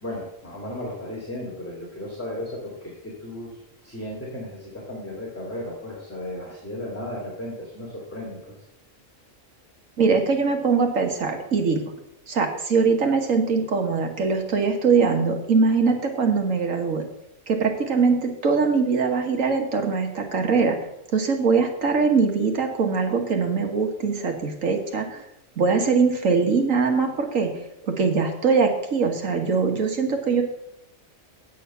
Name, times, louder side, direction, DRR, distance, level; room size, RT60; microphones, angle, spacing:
voice 1, 0.0-3.5 3.8-8.5, left 1 dB, 10° left, -5 dB, 2.6 m, -35 dB
voice 2, 10.0-11.8 12.3-17.0 17.5-20.8 21.1-25.2 25.6-27.5 27.8-30.4, right 5 dB, 75° right, 4 dB, 1.8 m, -22 dB
8.6 x 8.5 x 5.7 m, 0.79 s
omnidirectional pair, 1.4 m